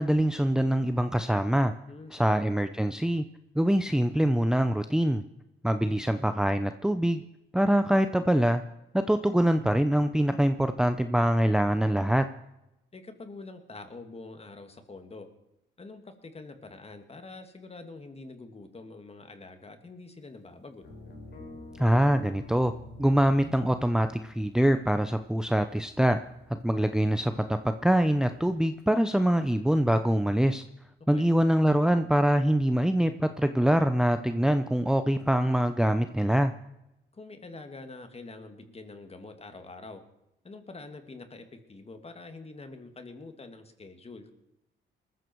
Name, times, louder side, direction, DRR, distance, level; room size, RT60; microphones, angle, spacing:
voice 1, 0.0-1.7 2.1-3.2 3.6-5.2 5.6-7.2 7.5-8.6 8.9-12.3 21.8-22.7 23.0-26.2 26.6-30.6 31.1-36.5, right 1 dB, 5° right, 9 dB, 0.8 m, -24 dB
voice 2, 1.9-2.4 12.9-15.3 15.8-20.8 31.1-31.3 37.1-40.0 40.4-44.3, left 3 dB, 30° left, 7 dB, 2.6 m, -45 dB
sound 1, 20.8-28.7, left 2 dB, 60° left, 4.1 m, -50 dB
20.5 x 14.0 x 4.7 m, 0.86 s
cardioid pair, 80°, 20 cm